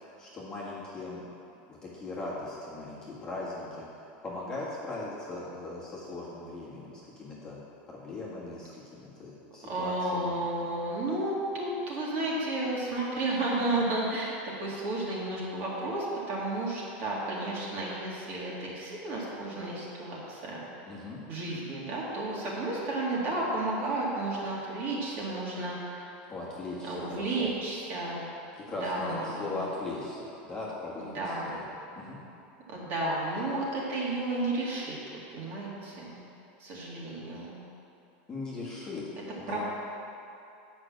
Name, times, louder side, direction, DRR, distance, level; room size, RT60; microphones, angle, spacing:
voice 1, 0.2-1.2 1.7-7.6 7.9-10.4 20.9-21.2 26.3-27.5 28.5-31.6 31.9-32.2 38.3-39.0 39.4-39.6, left 2 dB, 15° left, -7 dB, 1.6 m, -39 dB
voice 2, 9.6-20.6 21.3-26.1 26.8-28.3 28.7-29.7 31.0-31.5 32.7-35.0 35.3-36.2 36.6-37.6 39.5-39.7, right 2 dB, 35° right, -5 dB, 2.2 m, -32 dB
9.6 x 6.0 x 7.4 m, 2.7 s
supercardioid pair, 175°, 6 cm